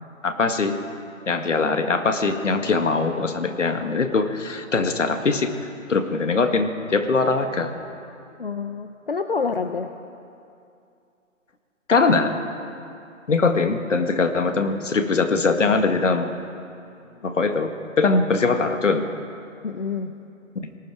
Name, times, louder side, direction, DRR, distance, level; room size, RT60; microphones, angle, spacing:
voice 1, 0.2-0.8 1.3-5.5 5.9-7.7 11.9-12.4 13.3-16.3 17.2-19.1 20.6-20.7, left 4 dB, 65° left, 7 dB, 2.0 m, -21 dB
voice 2, 8.4-9.9 17.1-17.2 19.6-20.1, left 5 dB, 45° left, 8 dB, 0.7 m, -28 dB
29.5 x 19.0 x 4.9 m, 2.6 s
hypercardioid pair, 170°, 40 cm